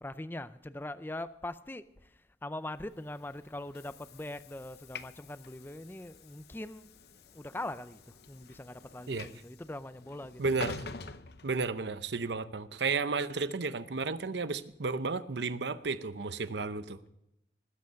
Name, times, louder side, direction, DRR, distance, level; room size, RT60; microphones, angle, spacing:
voice 1, 0.0-10.4, left 1 dB, 10° left, 13 dB, 0.4 m, -42 dB
Train / Sliding door, 2.9-12.2, left 4 dB, 60° left, 0.7 m, -47 dB
voice 2, 10.4-10.8 11.4-17.0, right 4 dB, 75° right, 13 dB, 0.8 m, -33 dB
19.5 x 8.1 x 6.4 m, 0.83 s
head